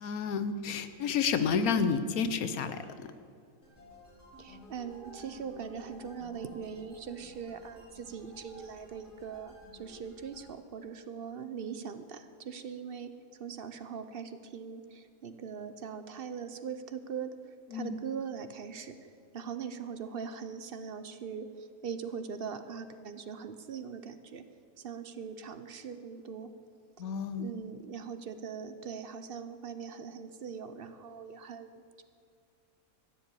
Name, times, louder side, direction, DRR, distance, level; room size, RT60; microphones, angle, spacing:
voice 1, 0.0-3.1 17.7-18.0 27.0-27.5, left 6 dB, 85° left, 11 dB, 1.3 m, -30 dB
sound 1, 3.6-10.5, left 1 dB, 10° right, 4.3 m, -54 dB
voice 2, 4.4-13.1 13.4-24.4 24.8-26.5 27.4-32.0, right 6 dB, 50° right, 10 dB, 0.8 m, -41 dB
14.5 x 7.8 x 8.4 m, 2.3 s
omnidirectional pair, 1.5 m